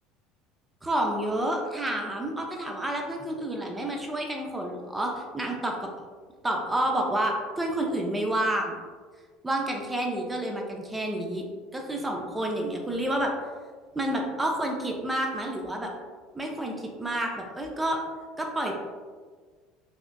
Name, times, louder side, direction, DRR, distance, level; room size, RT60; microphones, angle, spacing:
voice 1, 0.8-5.9 6.4-8.8 9.4-11.4 11.7-13.3 13.9-15.9 16.3-18.0 18.4-18.8, right 1 dB, 15° right, 1 dB, 0.6 m, -29 dB
3.5 x 2.5 x 2.3 m, 1.5 s
hypercardioid pair, 75°, 0 cm